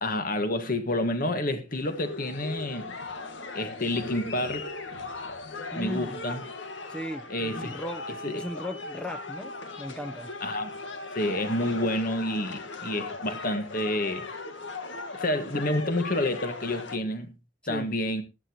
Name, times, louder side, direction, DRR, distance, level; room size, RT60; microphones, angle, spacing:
voice 1, 0.0-2.8 3.5-4.7 5.7-6.4 7.3-7.7 8.2-8.4 10.4-10.7 11.1-14.3 15.1-17.3 17.7-18.2, left 1 dB, 50° left, 1.9 m, -29 dB
sound 1, 1.7-17.0, left 3 dB, 85° left, 1.8 m, -38 dB
voice 2, 5.7-6.2 6.9-10.3 12.9-13.0 17.7-17.9, equal, 5° left, 0.8 m, -37 dB
15.5 x 11.5 x 3.0 m
head